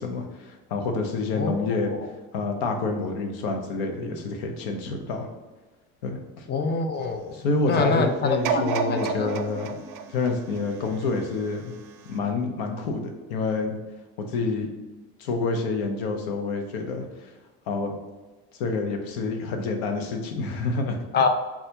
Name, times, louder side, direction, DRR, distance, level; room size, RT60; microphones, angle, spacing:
voice 1, 0.0-1.9 2.3-5.3 6.0-6.5 7.3-9.8 10.1-11.7 12.1-13.0 13.3-13.7 14.3-14.7 15.2-17.3 17.7-17.9 18.6-21.0, left 3 dB, 90° left, 5 dB, 0.7 m, -28 dB
voice 2, 1.3-2.1 6.5-7.3 7.6-9.4 21.1-21.3, left 4 dB, 35° left, 5 dB, 0.5 m, -26 dB
sound 1, 8.4-11.5 12.1-12.2, right 6 dB, 70° right, 0.4 m, -30 dB
5.5 x 2.4 x 2.6 m, 1.2 s
supercardioid pair, 90°, 30 cm